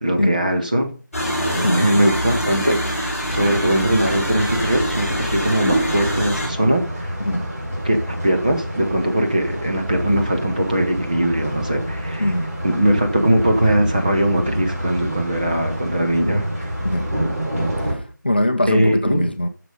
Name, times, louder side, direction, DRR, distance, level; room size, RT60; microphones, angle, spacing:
voice 1, 0.0-0.9 1.7-7.1 7.8-12.3 12.6-16.7 18.7-19.3, right 1 dB, 25° right, 1.0 m, -20 dB
sound 1, 1.1-6.5, equal, ahead, 2.0 m, -24 dB
sound 2, 3.3-17.9, equal, 45° right, 5.0 m, -28 dB
voice 2, 17.6-19.5, left 1 dB, 30° left, 0.7 m, -22 dB
10.0 x 6.8 x 5.4 m
figure-of-eight pair, 175°, 11 cm